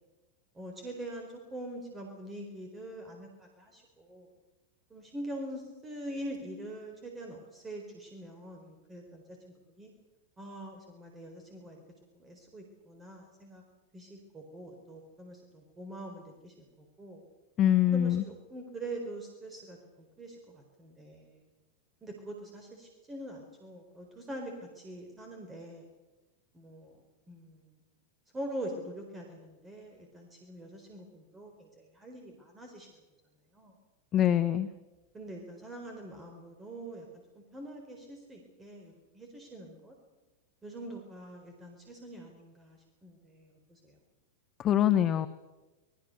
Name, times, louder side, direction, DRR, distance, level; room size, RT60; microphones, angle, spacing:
voice 1, 0.5-4.3 4.9-9.4 9.8-9.9 10.4-11.8 12.2-13.6 13.9-16.6 17.0-17.2 17.9-21.4 22.0-25.9 26.5-27.0 27.3-27.7 28.3-32.9 33.5-33.7 35.1-37.1 37.3-39.9 40.6-44.0, right 1 dB, 15° right, 2 dB, 4.4 m, -44 dB
voice 2, 17.6-18.2 34.1-34.7 44.6-45.3, left 11 dB, 30° left, 11 dB, 1.1 m, -24 dB
26.5 x 20.5 x 6.7 m, 1.1 s
figure-of-eight pair, 90°, 0 cm